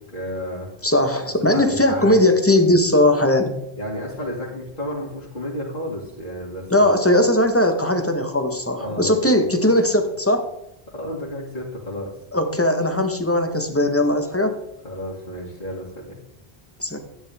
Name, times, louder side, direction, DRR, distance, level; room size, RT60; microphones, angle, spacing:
voice 1, 0.1-0.7 1.5-2.2 3.8-6.9 8.8-9.3 10.9-12.1 14.8-16.2, left 1 dB, 50° left, -6 dB, 2.4 m, -31 dB
voice 2, 0.8-3.5 6.7-10.4 12.3-14.6 16.8-17.0, left 1 dB, 15° left, 5 dB, 1.2 m, -19 dB
13.0 x 9.4 x 3.5 m, 0.82 s
omnidirectional pair, 1.0 m